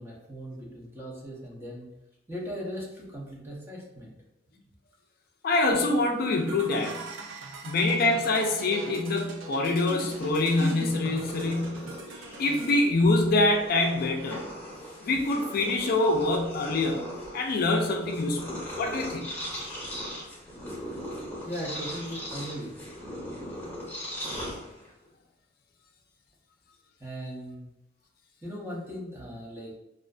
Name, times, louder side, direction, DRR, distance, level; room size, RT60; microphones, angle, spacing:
voice 1, 0.0-1.9 2.3-4.2 4.5-4.6 21.4-22.7 27.0-27.7 28.4-29.8, equal, 15° right, -4 dB, 0.6 m, -38 dB
voice 2, 5.4-7.0 7.6-11.9 12.4-14.5 15.0-17.1 17.3-19.3, left 2 dB, 55° left, 2 dB, 0.3 m, -25 dB
sound 1, 6.4-12.8, right 2 dB, 80° right, 0.4 m, -40 dB
Purr, 10.1-25.1, equal, 10° left, 0.9 m, -40 dB
2.4 x 2.4 x 2.2 m, 0.90 s
head